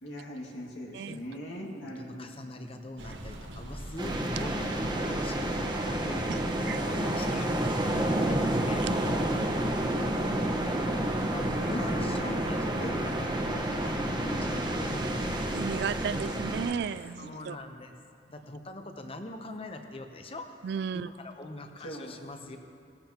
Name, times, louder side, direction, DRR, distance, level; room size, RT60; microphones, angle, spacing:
voice 1, 0.0-2.7 10.1-10.3 10.7-13.0 14.2-14.5 17.2-17.5 21.8-22.6, equal, 75° left, -2 dB, 2.2 m, -42 dB
voice 2, 2.0-9.2 10.4-15.6 17.2-17.9 18.3-20.6 20.9-22.6, left 1 dB, 30° left, 5 dB, 0.8 m, -43 dB
sound 1, 3.0-16.6, right 1 dB, 80° right, 1.4 m, -41 dB
sound 2, 4.0-16.7, right 1 dB, 25° right, 1.2 m, -30 dB
voice 3, 15.5-17.6 19.5-19.6 20.6-21.1, right 7 dB, 60° right, 16 dB, 0.3 m, -34 dB
19.0 x 14.5 x 3.0 m, 2.4 s
head